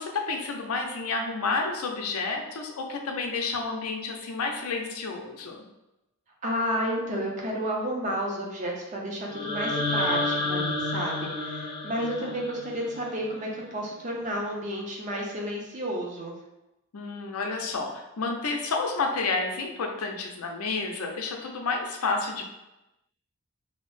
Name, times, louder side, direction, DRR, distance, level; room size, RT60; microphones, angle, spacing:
voice 1, 0.0-5.6 12.0-12.3 16.9-22.5, left 3 dB, 85° left, 2 dB, 0.5 m, -30 dB
voice 2, 6.4-16.3, equal, 35° right, -1 dB, 0.5 m, -31 dB
sound 1, 9.3-13.3, left 2 dB, 20° left, 0.5 m, -30 dB
2.8 x 2.0 x 3.0 m, 0.94 s
head